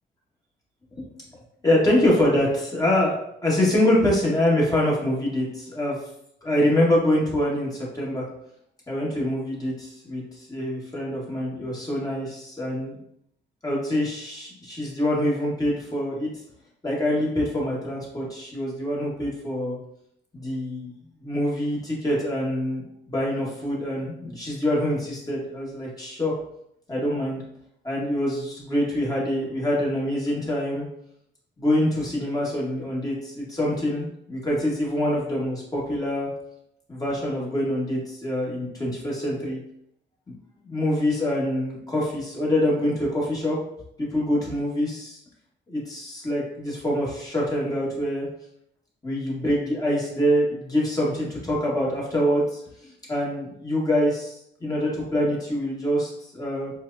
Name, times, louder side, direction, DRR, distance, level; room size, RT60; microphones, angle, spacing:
voice 1, 1.6-6.0 6.4-8.2 8.9-13.0 13.6-16.3 16.8-19.8 20.3-20.9 21.2-26.3 26.9-27.4 27.8-30.9 31.6-36.3 36.9-39.6 40.3-40.4 40.6-43.6 44.0-45.2 45.7-48.3 49.0-56.7, left 1 dB, 20° left, -5 dB, 1.4 m, -25 dB
4.5 x 2.2 x 2.6 m, 0.74 s
cardioid pair, 90°, 20 cm